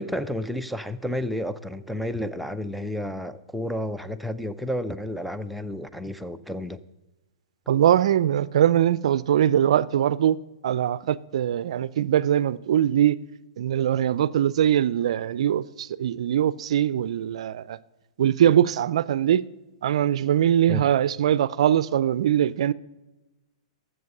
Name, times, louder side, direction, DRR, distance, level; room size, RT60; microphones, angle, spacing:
voice 1, 0.0-6.8 20.7-20.8, left 1 dB, ahead, 0.5 m, -31 dB
voice 2, 7.7-10.4 10.6-13.2 13.6-17.8 18.2-19.4 19.8-22.7, right 10 dB, 70° right, 0.4 m, -22 dB
12.5 x 7.7 x 6.6 m
hypercardioid pair, 140°, 3 cm